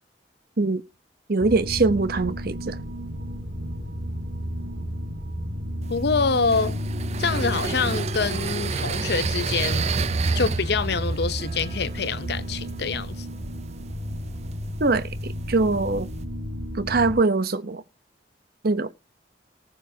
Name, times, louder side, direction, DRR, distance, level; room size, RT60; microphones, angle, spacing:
voice 1, 1.3-2.7 14.8-16.1 16.8-17.8 18.6-18.9, right 3 dB, 55° right, 0.9 m, -22 dB
sound 1, 1.4-17.1, equal, 70° right, 4.3 m, -32 dB
sound 2, 5.8-16.2, right 4 dB, 35° right, 0.5 m, -31 dB
voice 2, 5.9-6.8 7.2-9.9 10.3-13.3, left 4 dB, 60° left, 0.8 m, -26 dB
18.5 x 7.1 x 2.8 m
head